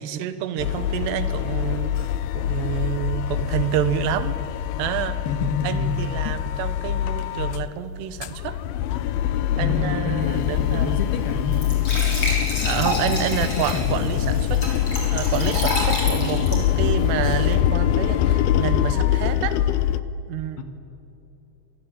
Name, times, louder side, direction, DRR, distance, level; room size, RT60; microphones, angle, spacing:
voice 1, 0.0-2.1 2.3-4.4 4.8-5.2 5.6-8.6 9.6-11.0 12.6-14.6 15.1-19.6 20.3-20.6, right 10 dB, 70° right, 11 dB, 3.2 m, -28 dB
sound 1, 0.6-7.7 8.0-20.0, left 11 dB, 90° left, 2.1 m, -24 dB
voice 2, 5.3-5.9 9.6-11.5 12.6-12.9 13.4-14.2 20.6-20.7, left 4 dB, 60° left, 6 dB, 3.1 m, -28 dB
Glass / Trickle dribble / Fill (with liquid), 10.2-17.6, left 1 dB, 30° left, 6.6 m, -30 dB
28.0 x 20.5 x 9.0 m, 2.8 s
omnidirectional pair, 5.5 m